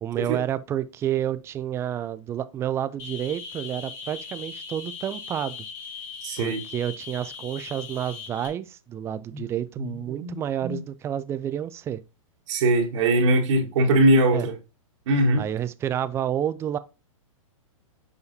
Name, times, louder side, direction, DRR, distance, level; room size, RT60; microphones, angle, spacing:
voice 1, 0.0-5.7 6.4-12.0 14.3-14.5 15.4-16.8, right 10 dB, 15° right, 0.3 m, -29 dB
sound 1, 3.0-8.5, left 5 dB, 40° left, 1.9 m, -39 dB
voice 2, 6.2-6.6 9.3-9.4 9.8-10.4 10.6-10.8 12.5-14.5 15.1-15.4, right 1 dB, 60° right, 1.6 m, -21 dB
7.1 x 5.0 x 2.7 m
hypercardioid pair, 135°, 18 cm